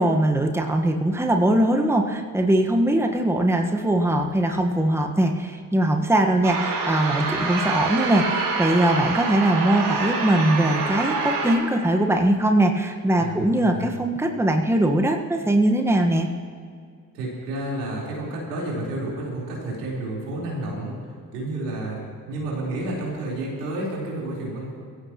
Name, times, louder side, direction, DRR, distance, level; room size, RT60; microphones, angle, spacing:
voice 1, 0.0-16.3, right 1 dB, 5° right, 3 dB, 1.4 m, -21 dB
sound 1, 6.4-11.6, right 4 dB, 60° right, 3.7 m, -26 dB
voice 2, 13.2-13.9 17.1-21.0 21.3-24.7, right 2 dB, 85° right, -5 dB, 4.3 m, -30 dB
22.5 x 15.5 x 3.1 m, 2.2 s
hypercardioid pair, 50°, 46 cm